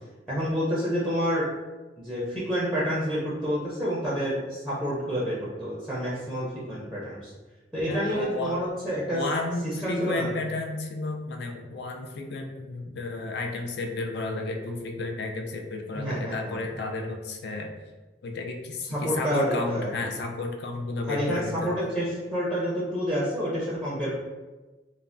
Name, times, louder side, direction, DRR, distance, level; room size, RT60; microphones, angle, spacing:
voice 1, 0.3-1.5 2.0-7.3 7.7-9.2 9.6-10.3 15.9-16.5 19.0-19.9 21.1-24.1, equal, ahead, -7 dB, 0.5 m, -28 dB
voice 2, 7.9-8.6 9.1-17.7 18.2-21.7, left 2 dB, 65° left, 3 dB, 0.4 m, -32 dB
3.2 x 2.0 x 2.5 m, 1.2 s
head